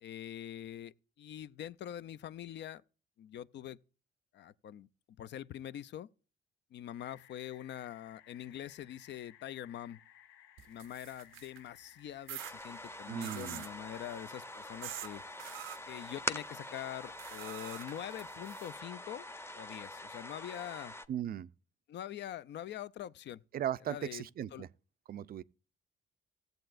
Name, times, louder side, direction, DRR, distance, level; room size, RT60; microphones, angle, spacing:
voice 1, 0.0-2.8 3.2-3.8 4.3-4.9 5.2-6.1 6.7-10.0 10.7-15.2 15.9-19.3 19.5-20.9 21.9-23.4 23.9-24.2 24.5-24.6, left 11 dB, 60° left, 0.5 m, -44 dB
sound 1, 7.0-12.6, left 11 dB, 85° left, 0.9 m, -60 dB
sound 2, 10.6-11.7 12.3-12.5 13.2-13.7 14.8-15.1 15.4-15.8 17.2-18.7, right 13 dB, 85° right, 0.6 m, -45 dB
sound 3, 12.4-21.1, left 1 dB, 10° left, 0.7 m, -44 dB
voice 2, 13.1-13.6 21.1-21.5 23.5-24.7 25.1-25.4, right 10 dB, 50° right, 0.4 m, -37 dB
16.0 x 7.8 x 2.5 m
cardioid pair, 90°, 20 cm